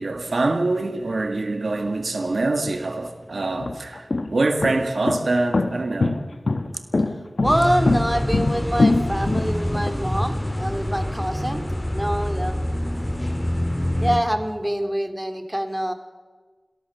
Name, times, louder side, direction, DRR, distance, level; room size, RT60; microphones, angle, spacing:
voice 1, 0.0-6.2, right 2 dB, 85° right, 1.7 m, -24 dB
sound 1, 2.7-2.8 3.4-10.0, left 2 dB, 75° left, 1.4 m, -22 dB
sound 2, 7.4-14.2, left 1 dB, 20° left, 3.5 m, -26 dB
voice 2, 7.4-11.6 11.9-12.6 14.0-15.9, equal, 10° right, 2.6 m, -25 dB
29.5 x 13.5 x 6.9 m
wide cardioid pair, 45°, 0 cm